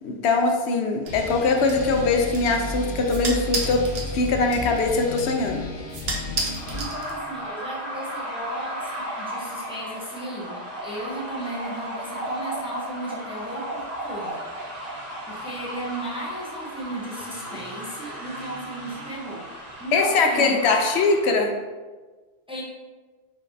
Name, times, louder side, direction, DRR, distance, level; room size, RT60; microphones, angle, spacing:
voice 1, 0.0-3.8 4.1-5.6 19.9-21.5, left 3 dB, 80° left, 3 dB, 0.9 m, -22 dB
sound 1, 1.0-7.5, right 3 dB, 65° right, 0.9 m, -34 dB
sound 2, 1.1-6.8, left 1 dB, 45° left, 0.8 m, -33 dB
sound 3, 6.5-21.3, right 1 dB, 40° right, 1.0 m, -35 dB
voice 2, 6.7-14.5 15.3-19.4 19.8-20.8 22.5-22.6, right 1 dB, 5° right, -5 dB, 0.8 m, -34 dB
5.6 x 3.2 x 2.7 m, 1.3 s
omnidirectional pair, 1.1 m